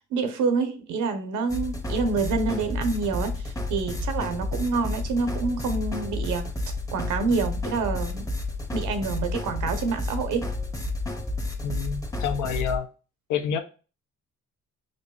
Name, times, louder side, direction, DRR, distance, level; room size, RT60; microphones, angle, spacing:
voice 1, 0.1-6.5 6.9-8.3 8.7-10.5, right 4 dB, 80° right, 0.9 m, -27 dB
sound 1, 1.5-12.8, left 2 dB, 10° left, 0.7 m, -31 dB
voice 2, 11.6-12.9 13.3-13.6, left 7 dB, 75° left, 0.7 m, -28 dB
5.2 x 2.6 x 2.3 m
cardioid pair, 90°, 30 cm